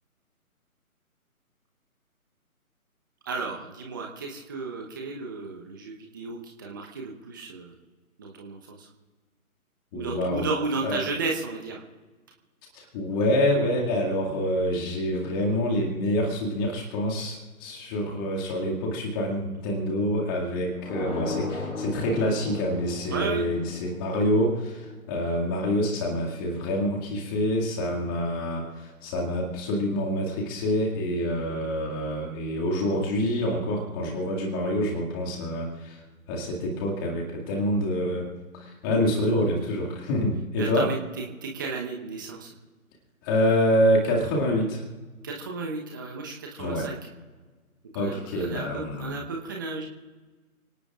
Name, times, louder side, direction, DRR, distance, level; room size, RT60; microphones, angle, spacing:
voice 1, 3.3-7.8 8.2-8.9 9.9-11.8 23.1-23.5 40.6-42.5 45.2-47.0 47.9-49.9, right 4 dB, 15° right, 0 dB, 1.0 m, -33 dB
voice 2, 9.9-10.5 10.8-11.0 12.7-36.0 36.3-40.9 43.2-44.8 46.6-46.9 47.9-49.2, equal, 15° left, -1 dB, 2.2 m, -26 dB
sound 1, 20.8-25.5, left 3 dB, 70° left, 5.2 m, -36 dB
29.5 x 18.0 x 2.5 m, 1.3 s
figure-of-eight pair, 155°, 44 cm